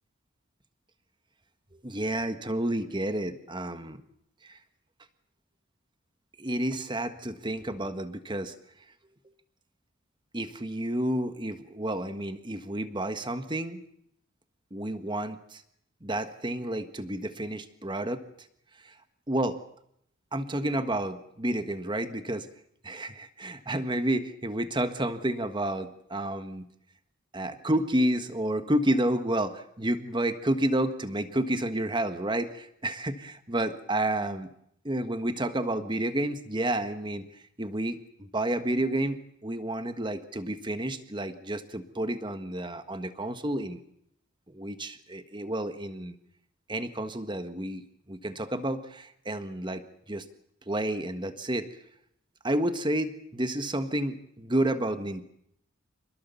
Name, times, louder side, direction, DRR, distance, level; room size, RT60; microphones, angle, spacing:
voice 1, 1.8-4.0 4.4-4.6 6.4-8.5 10.3-13.8 14.7-15.6 16.0-18.2 18.8-18.9 19.3-19.6 20.3-22.5 22.8-26.7 27.3-34.5 34.8-37.3 37.6-43.8 44.5-46.1 46.7-47.8 48.1-49.8 50.1-50.2 50.7-51.7 52.4-55.2, right 1 dB, 20° right, 10 dB, 1.6 m, -30 dB
27.5 x 20.5 x 7.1 m, 0.73 s
head